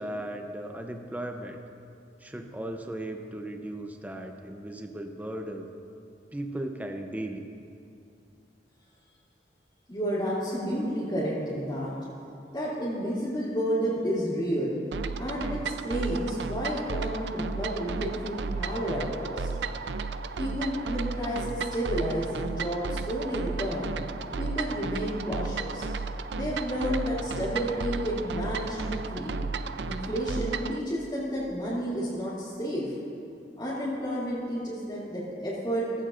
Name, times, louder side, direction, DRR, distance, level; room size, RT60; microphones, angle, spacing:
voice 1, 0.0-1.6 2.2-5.7 6.3-7.5, right 1 dB, 10° right, 4 dB, 0.6 m, -36 dB
voice 2, 9.9-11.9 12.5-14.8 15.2-19.5 20.4-23.9 24.4-25.9 26.3-29.3 29.8-32.9 33.6-36.0, equal, 25° left, -11 dB, 2.8 m, -31 dB
sound 1, 14.9-30.8, right 4 dB, 75° right, 0.4 m, -34 dB
16.5 x 15.5 x 2.5 m, 2.5 s
head